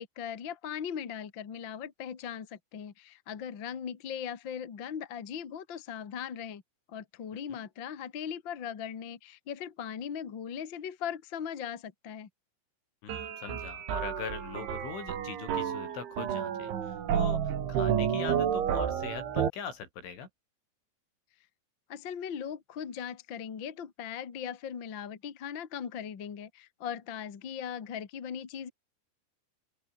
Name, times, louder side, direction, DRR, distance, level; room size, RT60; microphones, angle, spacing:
voice 1, 0.0-6.6 6.9-12.3 21.9-28.7, left 8 dB, 40° left, 1.7 m, -39 dB
voice 2, 13.0-20.3, left 6 dB, 85° left, 7.5 m, -41 dB
sound 1, 13.1-19.5, right 9 dB, 80° right, 5.7 m, -31 dB
open air
omnidirectional pair, 5.4 m